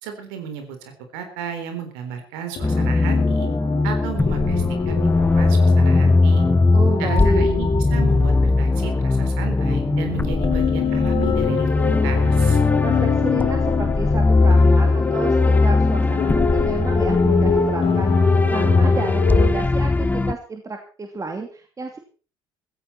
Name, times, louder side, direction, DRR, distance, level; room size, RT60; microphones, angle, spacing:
voice 1, 0.0-3.5 3.8-6.5 7.0-12.6, right 7 dB, 70° right, 6 dB, 3.7 m, -34 dB
sound 1, 2.6-19.5, left 7 dB, 50° left, 3.4 m, -26 dB
sound 2, 2.6-20.3, left 3 dB, 15° left, 0.8 m, -19 dB
voice 2, 6.7-7.5 12.8-22.0, right 3 dB, 25° right, 4 dB, 2.6 m, -31 dB
15.5 x 15.5 x 4.4 m, 0.38 s
figure-of-eight pair, 55°, 12 cm